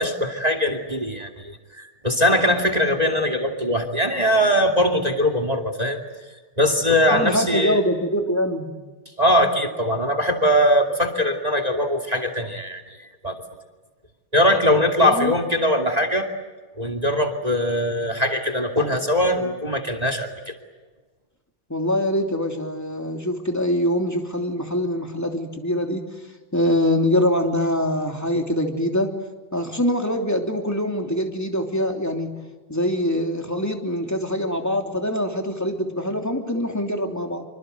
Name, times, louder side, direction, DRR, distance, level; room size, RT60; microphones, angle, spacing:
voice 1, 0.0-6.0 6.6-7.8 9.2-13.0 13.2-13.3 14.3-16.3 16.8-20.5, equal, 20° right, 5 dB, 2.4 m, -21 dB
voice 2, 7.1-8.7 15.0-15.3 21.7-26.0 26.5-29.1 29.5-32.4 32.7-37.4, equal, 5° left, 3 dB, 3.0 m, -24 dB
27.0 x 25.0 x 7.9 m, 1.3 s
omnidirectional pair, 2.4 m